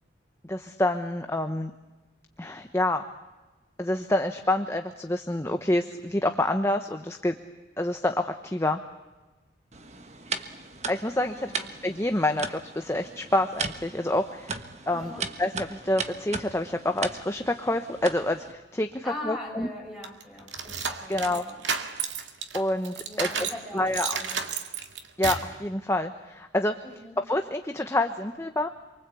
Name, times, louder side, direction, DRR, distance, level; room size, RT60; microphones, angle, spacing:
voice 1, 0.4-1.7 2.4-3.0 3.8-7.3 7.8-8.8 10.9-11.5 11.8-14.6 14.9-15.1 15.4-19.7 21.1-21.4 22.5-23.5 23.7-24.2 25.2-26.7 27.3-28.7, left 1 dB, 15° left, 6 dB, 1.0 m, -27 dB
sound 1, 9.7-18.5, right 4 dB, 35° right, 1.4 m, -37 dB
voice 2, 11.3-11.7 14.9-15.3 19.0-21.6 23.1-24.4 26.8-27.2, left 1 dB, ahead, 1 dB, 6.3 m, -41 dB
sound 2, 20.0-23.6 23.9-25.5, right 6 dB, 75° right, 2.2 m, -31 dB
27.5 x 24.0 x 8.4 m, 1.1 s
head